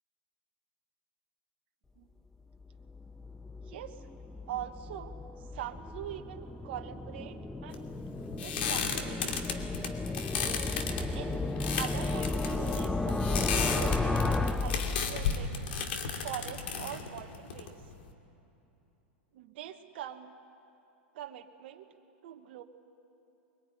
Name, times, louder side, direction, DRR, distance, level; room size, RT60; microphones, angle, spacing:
sound 1, 2.6-15.6, left 2 dB, 5° left, 0.9 m, -34 dB
voice 1, 3.7-4.0 4.5-5.1 5.5-7.9 8.3-9.5 11.1-15.5 16.2-17.8 19.3-20.3 21.1-21.9 22.2-22.6, right 11 dB, 65° right, 5 dB, 1.3 m, -43 dB
sound 2, 7.7-18.1, left 6 dB, 75° left, 2.5 m, -35 dB
23.0 x 23.0 x 9.9 m, 2.9 s
hypercardioid pair, 120°, 6 cm